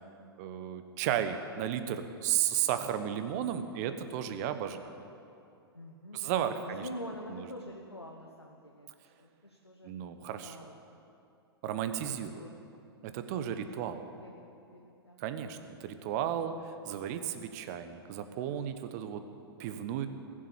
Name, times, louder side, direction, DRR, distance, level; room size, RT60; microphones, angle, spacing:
voice 1, 0.4-4.9 6.1-6.9 7.3-7.5 9.8-10.6 11.6-12.4 13.0-14.0 15.2-19.2 19.6-20.1, right 10 dB, 40° right, 9 dB, 1.1 m, -34 dB
voice 2, 5.7-9.9 10.4-10.8 12.2-12.5 13.5-13.7 14.2-15.2, left 1 dB, 90° left, 0 dB, 1.2 m, -46 dB
20.0 x 7.6 x 8.5 m, 2.7 s
figure-of-eight pair, 105°, 13 cm